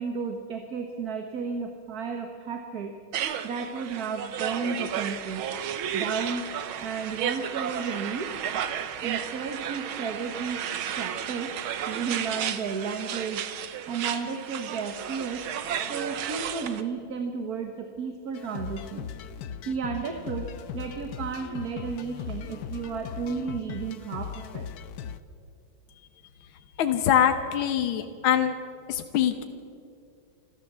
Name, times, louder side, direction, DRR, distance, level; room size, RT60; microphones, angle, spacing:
voice 1, 0.0-2.9 3.4-5.4 5.9-6.5 6.8-8.3 9.0-10.6 10.9-11.6 11.8-13.5 13.9-15.5 15.9-19.1 19.6-24.7, right 5 dB, 50° right, 5 dB, 1.6 m, -33 dB
sound 1, 3.1-16.8, right 9 dB, 85° right, 1.8 m, -33 dB
sound 2, 18.3-25.2, left 8 dB, 60° left, 1.1 m, -38 dB
voice 2, 26.8-28.5 28.9-29.4, left 9 dB, 80° left, 7 dB, 1.8 m, -23 dB
28.0 x 13.0 x 7.5 m, 2.5 s
omnidirectional pair, 2.2 m